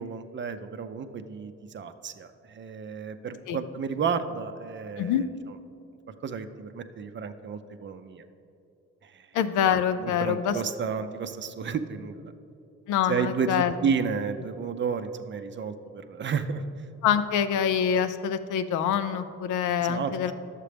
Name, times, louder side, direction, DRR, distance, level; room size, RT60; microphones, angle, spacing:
voice 1, 0.0-5.3 6.2-8.2 9.0-9.3 10.0-12.3 13.1-16.6 19.8-20.3, right 6 dB, 40° right, 9 dB, 0.5 m, -32 dB
voice 2, 9.3-10.6 12.9-13.7 17.0-20.3, left 8 dB, 90° left, 10 dB, 0.5 m, -25 dB
11.0 x 7.4 x 3.4 m, 2.7 s
cardioid pair, 90°, 30 cm